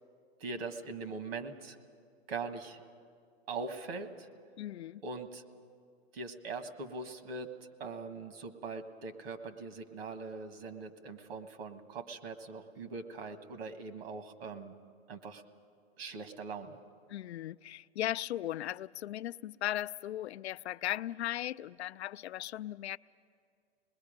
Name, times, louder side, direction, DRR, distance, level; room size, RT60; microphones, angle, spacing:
voice 1, 0.4-1.7 2.3-2.8 3.5-4.3 5.0-5.4 6.1-7.5 7.8-14.7 15.1-15.4 16.0-16.8, right 4 dB, 60° right, 1.7 m, -41 dB
voice 2, 4.6-5.0 17.1-23.0, left 13 dB, 80° left, 0.5 m, -37 dB
27.0 x 20.5 x 5.2 m
hypercardioid pair, 135°, 33 cm